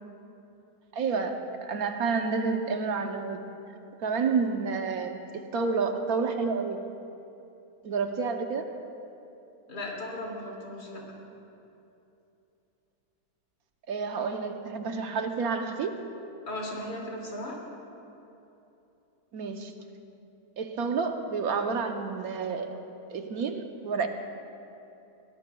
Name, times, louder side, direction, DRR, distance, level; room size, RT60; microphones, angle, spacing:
voice 1, 0.9-3.4 4.0-6.8 7.8-8.7 13.9-16.0 19.3-19.7 20.6-22.8 23.1-24.1, right 5 dB, 70° right, 5 dB, 1.2 m, -29 dB
voice 2, 9.7-11.0 16.5-17.6, left 1 dB, 80° left, -3 dB, 3.1 m, -36 dB
22.5 x 17.5 x 2.3 m, 2.9 s
omnidirectional pair, 1.7 m